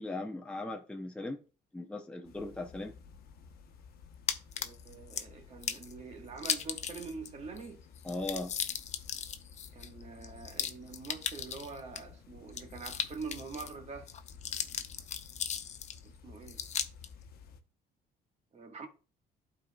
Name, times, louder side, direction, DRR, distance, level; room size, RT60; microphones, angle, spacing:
voice 1, 0.0-1.4 1.7-2.9 8.0-8.6, left 2 dB, 5° left, 0.7 m, -38 dB
sound 1, 2.2-17.6, left 6 dB, 65° left, 0.9 m, -54 dB
sound 2, 4.3-5.2 5.6-5.9 6.4-7.3 7.6-7.7 7.9-12.0 12.5-13.7 14.1-16.0 16.5-17.1, left 8 dB, 45° left, 0.6 m, -37 dB
voice 2, 4.6-7.8 9.7-14.1 16.0-16.6 18.5-18.9, right 4 dB, 40° right, 1.5 m, -45 dB
12.0 x 4.1 x 2.3 m
cardioid pair, 110°, 17 cm